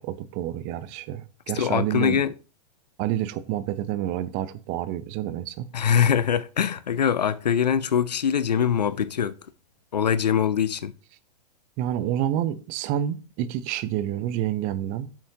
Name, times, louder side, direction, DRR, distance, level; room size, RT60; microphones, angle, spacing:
voice 1, 0.0-2.2 3.0-5.7 11.8-15.1, right 11 dB, 40° right, 0.8 m, -28 dB
voice 2, 1.5-2.3 5.7-9.3 9.9-10.9, left 8 dB, 90° left, 0.6 m, -23 dB
9.5 x 7.3 x 2.9 m
hypercardioid pair, 110°, 20 cm